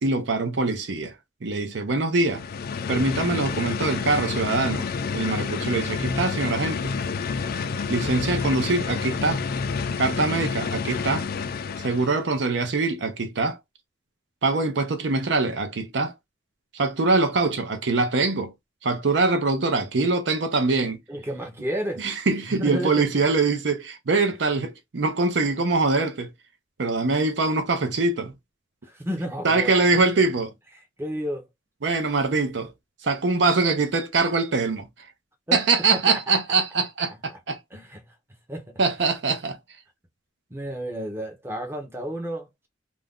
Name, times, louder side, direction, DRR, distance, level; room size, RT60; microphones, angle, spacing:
voice 1, 0.0-1.1 1.4-2.4 2.9-4.9 5.1-6.9 7.9-9.4 10.0-11.3 11.8-13.6 14.4-16.1 16.7-18.5 18.8-21.0 22.0-26.3 26.8-28.3 29.4-30.5 31.8-32.7 33.0-34.9 35.5-37.6 38.8-39.6, right 3 dB, 70° right, 0.6 m, -23 dB
sound 1, 2.2-12.2, left 5 dB, 55° left, 0.3 m, -29 dB
voice 2, 21.1-22.1 22.5-22.9 28.8-30.3 31.0-31.5 35.5-35.6 35.9-36.4 37.1-37.4 37.7-38.1 38.5-38.8 40.5-42.7, equal, 15° right, 0.7 m, -32 dB
2.5 x 2.2 x 3.5 m
head